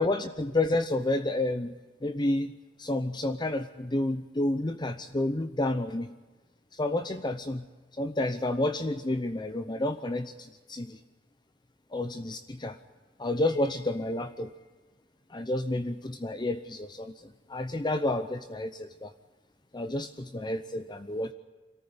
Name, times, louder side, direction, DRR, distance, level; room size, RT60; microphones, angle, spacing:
voice 1, 0.0-6.1 6.7-7.7 8.0-11.0 11.9-12.8 13.2-14.5 15.3-19.1 19.7-21.3, left 2 dB, 25° left, 9 dB, 0.8 m, -30 dB
26.0 x 14.5 x 9.6 m, 1.3 s
head